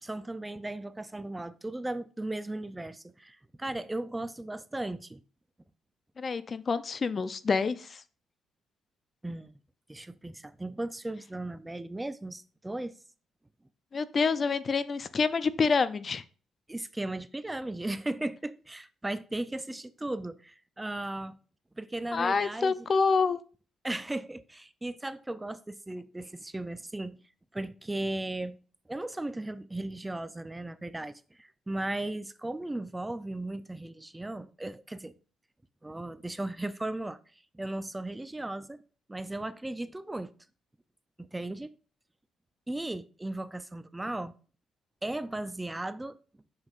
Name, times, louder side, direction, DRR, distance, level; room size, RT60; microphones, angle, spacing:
voice 1, 0.0-5.2 9.2-9.5 9.9-12.9 16.7-21.4 21.8-22.7 23.8-27.2 27.5-28.6 28.9-35.1 35.8-37.2 37.5-38.8 39.1-40.3 41.2-41.7 42.7-44.3 45.0-46.2, right 2 dB, 15° right, 0.4 m, -36 dB
voice 2, 6.2-8.0 13.9-16.2 22.1-23.4, left 5 dB, 40° left, 0.5 m, -27 dB
7.2 x 6.2 x 2.5 m
cardioid pair, 90°, 0 cm